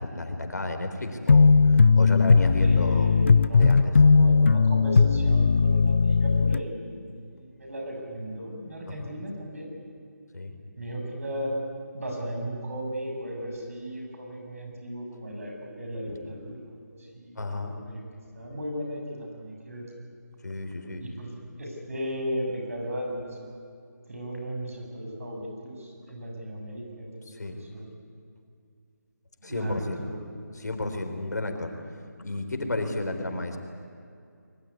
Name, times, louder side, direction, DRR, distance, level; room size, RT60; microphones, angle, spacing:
voice 1, 0.0-1.6 2.0-3.1 3.6-3.9 8.9-9.2 10.3-10.5 16.1-16.2 17.4-17.8 20.4-21.0 27.3-27.6 29.4-30.0 30.5-31.7 32.2-33.6, left 2 dB, 70° left, 5 dB, 4.5 m, -32 dB
sound 1, 1.3-6.6, left 4 dB, 40° left, 0.5 m, -18 dB
voice 2, 2.6-9.7 10.8-11.6 11.9-16.6 16.9-18.0 18.3-19.9 21.0-23.4 24.1-27.9 29.4-30.2, equal, 50° right, 1 dB, 7.4 m, -36 dB
22.0 x 21.0 x 9.8 m, 2.4 s
figure-of-eight pair, 170°, 10 cm